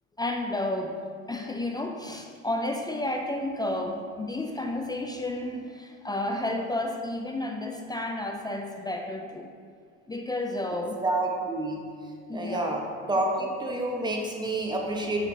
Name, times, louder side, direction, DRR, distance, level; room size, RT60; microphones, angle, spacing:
voice 1, 0.2-1.0 1.3-9.5 10.1-11.0 12.3-12.8, left 1 dB, 10° left, 3 dB, 0.4 m, -31 dB
voice 2, 11.0-11.8 12.3-12.8 13.1-15.3, right 2 dB, 15° right, 0 dB, 1.2 m, -28 dB
9.2 x 3.3 x 4.0 m, 2.1 s
hypercardioid pair, 75°, 34 cm